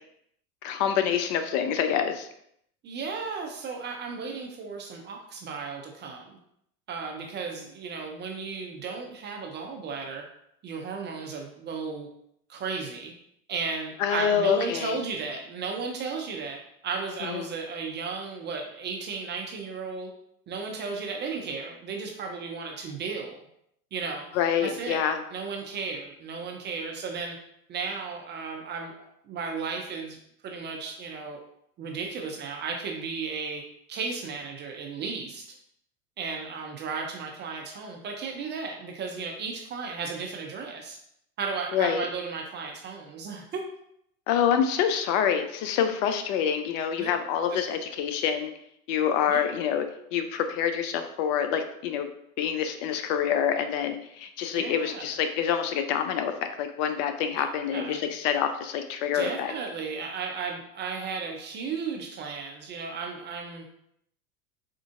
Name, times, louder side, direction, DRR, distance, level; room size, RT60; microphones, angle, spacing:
voice 1, 0.6-2.3 14.0-15.0 17.2-17.5 24.3-25.2 41.7-42.1 44.3-48.5 48.9-52.1 52.4-59.5, left 8 dB, 55° left, 8 dB, 0.5 m, -26 dB
voice 2, 2.8-6.4 6.9-10.2 10.6-12.1 12.5-13.1 13.5-20.1 20.5-23.4 23.9-24.3 24.6-25.0 25.3-27.4 27.7-30.2 30.4-31.4 31.8-33.6 33.9-35.5 36.2-41.0 41.4-43.6 47.0-47.1 47.5-47.6 49.3-49.5 54.5-55.1 57.4-57.5 57.7-58.1 59.1-63.7, right 5 dB, 25° right, 2 dB, 0.4 m, -34 dB
4.4 x 2.4 x 2.4 m, 0.73 s
hypercardioid pair, 90°, 46 cm